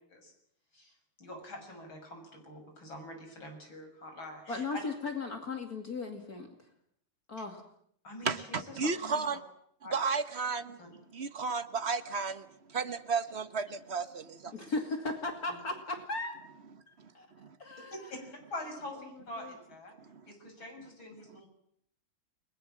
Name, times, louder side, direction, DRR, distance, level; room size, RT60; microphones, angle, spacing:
voice 1, 0.7-4.6 8.0-9.2 9.8-9.9 10.8-11.0 15.5-15.6 18.1-18.2 18.5-20.0 20.3-21.5, left 1 dB, 65° left, 4 dB, 7.4 m, -45 dB
voice 2, 4.5-6.5 7.3-7.6 14.5-16.3 16.9-17.3 17.6-17.9 19.4-19.5, left 3 dB, 45° left, 4 dB, 2.9 m, -36 dB
voice 3, 8.2-9.4 9.9-10.8 11.1-14.5 17.0-17.6 20.0-20.3, right 5 dB, 40° right, 11 dB, 1.1 m, -34 dB
29.5 x 21.0 x 7.5 m, 0.68 s
omnidirectional pair, 2.3 m